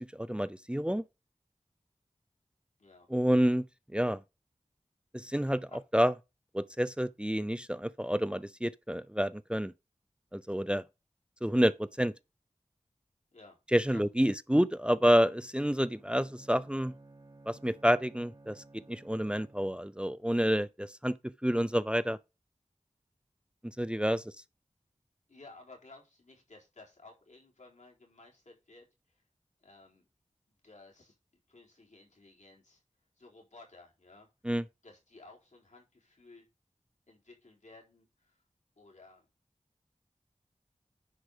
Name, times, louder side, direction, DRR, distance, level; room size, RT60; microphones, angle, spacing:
voice 1, 0.1-1.0 3.1-3.6 3.9-4.2 5.1-5.7 5.9-6.1 6.5-9.7 10.3-10.8 11.4-12.1 13.7-16.9 17.5-21.2 21.4-22.2 23.8-24.2 34.4-34.6, equal, 10° right, 0.6 m, -28 dB
voice 2, 2.8-3.1 5.7-5.8 13.3-13.6 13.9-14.3 25.3-29.2 29.6-30.1 30.5-31.2 31.5-32.8 33.2-34.3 34.8-36.5 37.1-38.4 38.8-39.3, left 3 dB, 80° left, 4.1 m, -56 dB
Bowed string instrument, 15.9-20.0, right 2 dB, 30° right, 2.8 m, -56 dB
10.5 x 4.8 x 5.0 m
wide cardioid pair, 45°, 12 cm